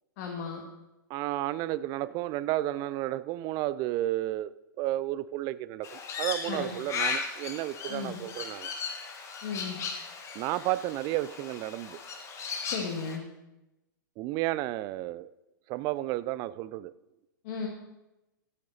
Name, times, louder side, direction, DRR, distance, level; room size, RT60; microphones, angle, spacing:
voice 1, 0.2-0.6 6.5-6.7 7.9-8.2 9.4-9.8 12.7-13.2 17.4-17.7, left 6 dB, 50° left, 0 dB, 1.9 m, -35 dB
voice 2, 1.1-4.5 4.8-8.7 10.3-12.0 14.2-15.3 15.7-16.9, right 15 dB, 35° right, 17 dB, 0.4 m, -32 dB
Crow, 5.8-13.2, left 5 dB, 25° left, 1.5 m, -37 dB
13.5 x 8.7 x 4.0 m, 0.96 s
hypercardioid pair, 115°, 11 cm